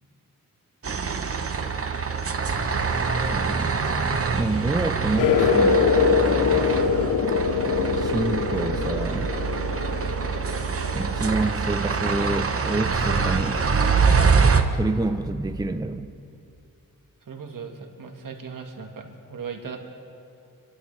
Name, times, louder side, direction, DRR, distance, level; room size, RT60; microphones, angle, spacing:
sound 1, 0.8-14.6, right 5 dB, 40° right, 0.9 m, -25 dB
voice 1, 3.3-3.7 4.3-6.0 8.0-9.4 10.9-13.6 14.7-16.1, right 2 dB, 10° right, 8 dB, 0.6 m, -27 dB
sound 2, 5.2-11.3, left 5 dB, 65° left, 0.8 m, -23 dB
voice 2, 17.3-19.8, right 5 dB, 65° right, 3 dB, 1.6 m, -37 dB
26.0 x 11.5 x 3.3 m, 2.5 s
wide cardioid pair, 85°, 34 cm